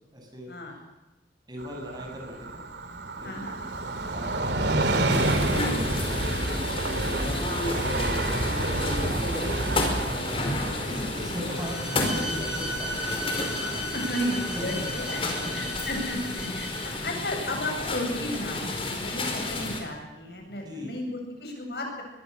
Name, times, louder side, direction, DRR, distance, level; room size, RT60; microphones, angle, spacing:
voice 1, 0.1-0.5 1.5-2.7 3.2-3.4 4.1-4.4 4.8-7.4 9.0-9.6 10.2-13.3 13.7-13.8 14.3-15.7 20.6-21.0, left 1 dB, 25° right, 2 dB, 7.1 m, -39 dB
Train, 1.6-14.9 15.3-15.4, right 2 dB, 80° right, 2.6 m, -30 dB
voice 2, 3.2-3.6 8.1-8.4 10.4-10.7 13.3-15.2 15.5-22.0, left 1 dB, 65° left, 2 dB, 7.9 m, -34 dB
sound 1, 5.1-19.8, left 2 dB, 30° left, 4.8 m, -31 dB
Bowed string instrument, 11.5-17.0, equal, 5° right, 6.7 m, -36 dB
24.5 x 22.0 x 6.8 m, 1.1 s
head